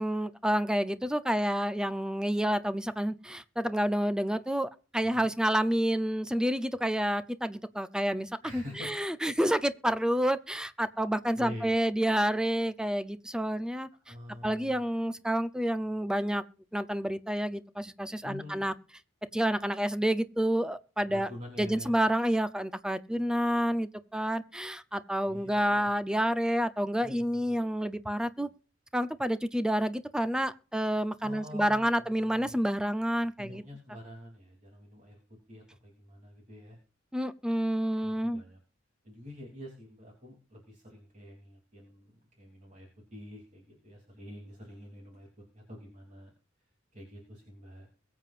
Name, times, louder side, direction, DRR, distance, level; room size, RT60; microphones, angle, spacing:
voice 1, 0.0-13.9 14.4-16.4 16.7-18.7 19.3-21.3 21.6-28.5 28.9-33.6 37.1-38.4, equal, 5° right, 0.6 m, -29 dB
voice 2, 8.4-9.1 11.3-11.7 14.1-14.8 18.2-18.7 21.1-21.9 25.3-25.9 27.0-27.4 31.2-32.5 33.4-35.2 35.5-36.8 37.9-38.6 39.0-45.3 45.5-46.3 46.9-47.9, left 1 dB, 40° right, 3.2 m, -47 dB
22.0 x 7.5 x 2.5 m
head